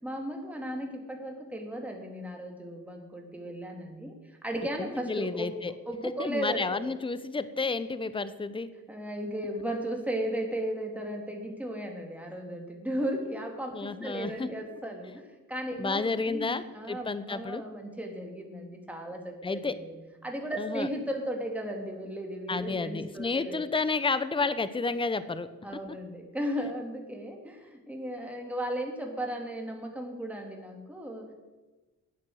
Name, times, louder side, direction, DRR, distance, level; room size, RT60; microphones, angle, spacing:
voice 1, 0.0-5.5 5.9-6.8 8.9-19.9 20.2-23.7 25.6-31.3, right 1 dB, 5° right, 1 dB, 2.6 m, -35 dB
voice 2, 4.8-5.7 6.2-8.7 13.7-14.5 15.8-17.6 19.4-19.7 20.6-20.9 22.5-25.5, left 4 dB, 15° left, 14 dB, 0.8 m, -31 dB
9.4 x 9.1 x 7.7 m, 1.2 s
cardioid pair, 75°, 33 cm